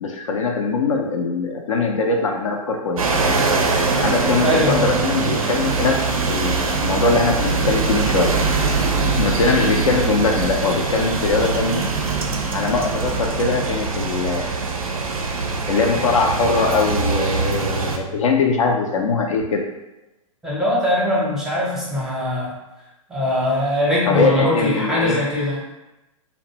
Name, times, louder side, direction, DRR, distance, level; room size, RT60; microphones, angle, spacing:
voice 1, 0.0-3.1 4.0-8.3 9.2-11.8 12.5-14.5 15.7-19.6 24.1-25.2, left 4 dB, 60° left, 1 dB, 0.4 m, -21 dB
sound 1, 3.0-18.0, right 4 dB, 75° right, 0.4 m, -22 dB
voice 2, 4.4-4.9 20.4-22.5 23.1-25.6, left 1 dB, 5° right, -7 dB, 0.7 m, -21 dB
2.5 x 2.1 x 2.8 m, 0.98 s
figure-of-eight pair, 110°, 18 cm